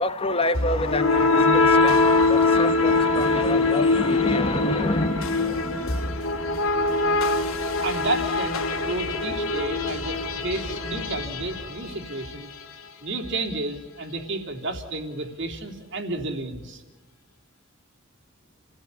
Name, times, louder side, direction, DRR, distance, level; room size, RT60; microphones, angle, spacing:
voice 1, 0.0-6.2, left 2 dB, 30° left, 10 dB, 1.5 m, -28 dB
sound 1, 0.5-12.4, left 3 dB, 85° left, 2.8 m, -23 dB
voice 2, 7.8-12.5 13.0-16.8, right 2 dB, 60° right, 2 dB, 3.5 m, -31 dB
30.0 x 17.0 x 8.6 m, 1.2 s
head